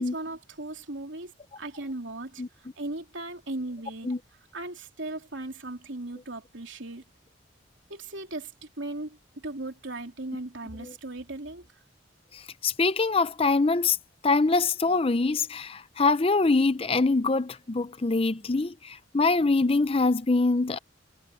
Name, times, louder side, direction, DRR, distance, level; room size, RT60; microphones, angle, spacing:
voice 1, 0.0-2.4 2.8-4.1 4.5-7.0 7.9-11.6, right 2 dB, 70° right, 3.3 m, -37 dB
voice 2, 12.3-14.0 14.2-20.8, left 3 dB, 30° left, 0.5 m, -24 dB
head